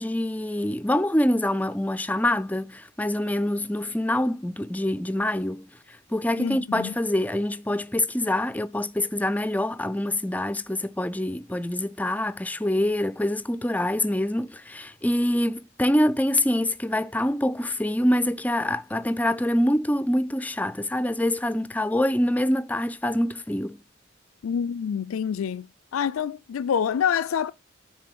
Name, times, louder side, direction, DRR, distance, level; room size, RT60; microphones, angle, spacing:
voice 1, 0.0-5.7 6.1-23.8, left 1 dB, 10° left, 0.3 m, -25 dB
voice 2, 6.4-6.9 24.4-27.5, left 7 dB, 85° left, 0.4 m, -27 dB
9.6 x 3.8 x 6.0 m
head